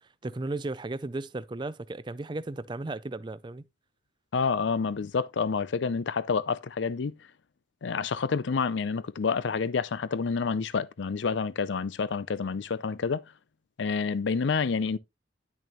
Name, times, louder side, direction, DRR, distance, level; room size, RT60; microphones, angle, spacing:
voice 1, 0.2-3.6, right 2 dB, 25° right, 0.4 m, -35 dB
voice 2, 4.3-7.1 7.8-13.2 13.8-15.0, left 5 dB, 70° left, 0.5 m, -28 dB
10.5 x 6.3 x 3.0 m
head